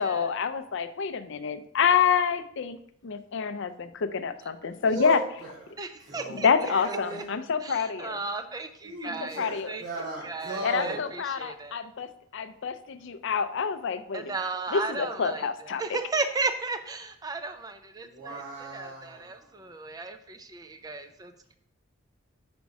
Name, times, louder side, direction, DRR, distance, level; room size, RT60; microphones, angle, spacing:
voice 1, 0.0-2.8 3.0-5.2 6.3-8.2 9.0-9.7 10.6-12.1 12.3-14.3 14.7-16.0, left 6 dB, 60° left, 11 dB, 0.5 m, -27 dB
voice 2, 4.7-7.4 8.8-11.0 18.0-19.5, right 3 dB, 40° right, -12 dB, 2.9 m, -37 dB
voice 3, 5.8-6.5 7.1-7.2 7.6-9.8 10.2-11.8 14.1-21.5, right 3 dB, 20° right, 8 dB, 0.5 m, -35 dB
5.2 x 5.2 x 4.7 m, 0.70 s
head